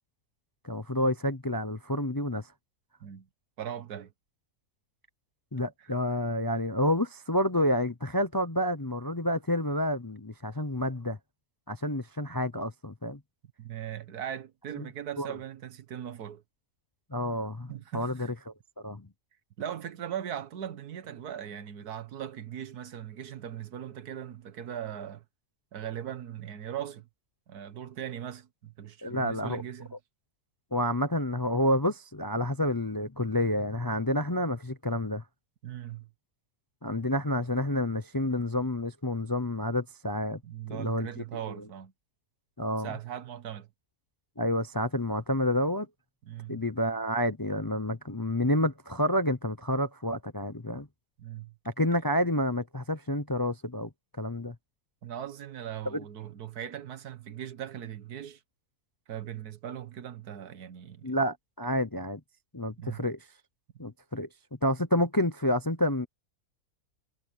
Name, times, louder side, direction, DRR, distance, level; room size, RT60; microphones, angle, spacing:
voice 1, 0.6-2.5 5.5-11.2 11.7-13.2 14.8-14.9 15.2-15.3 17.1-18.5 18.8-19.1 29.0-29.6 30.7-35.2 36.8-40.4 40.7-41.1 41.5-41.6 42.6-42.9 44.4-45.9 46.5-50.9 51.6-53.9 54.2-54.5 55.9-56.0 61.0-62.2 62.5-63.2 63.8-64.3 64.6-66.1, left 1 dB, 20° left, 0.6 m, -29 dB
voice 2, 3.6-4.1 5.8-5.9 13.6-16.4 17.7-18.3 19.6-25.2 25.7-27.1 27.5-29.9 35.6-36.1 40.4-41.9 42.8-43.7 46.2-46.6 51.2-51.6 55.0-58.4 59.1-61.2 62.8-63.0, right 10 dB, 80° right, 1.6 m, -39 dB
omnidirectional pair, 1.6 m